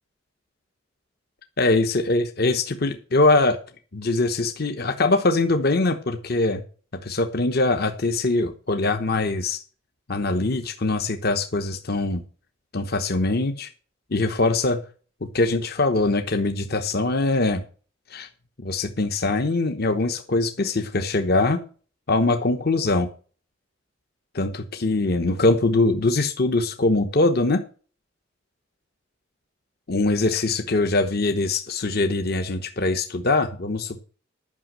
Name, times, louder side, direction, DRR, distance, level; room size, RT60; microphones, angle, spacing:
voice 1, 1.6-3.6 3.9-6.6 7.0-9.6 10.1-12.2 12.7-13.7 14.1-14.8 15.2-17.6 18.1-18.3 18.6-21.6 22.1-23.1 24.3-27.6 29.9-34.0, left 2 dB, 55° left, 7 dB, 1.0 m, -22 dB
11.0 x 6.1 x 7.5 m, 0.39 s
head